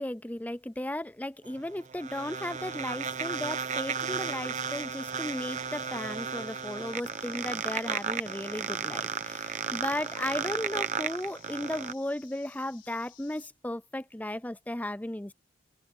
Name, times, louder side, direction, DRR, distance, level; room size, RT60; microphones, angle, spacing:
voice 1, 0.0-15.3, left 1 dB, 10° left, 0.5 m, -35 dB
sound 1, 1.5-11.9, right 6 dB, 40° right, 0.8 m, -34 dB
sound 2, 3.9-13.5, left 12 dB, 85° left, 4.6 m, -57 dB
open air
head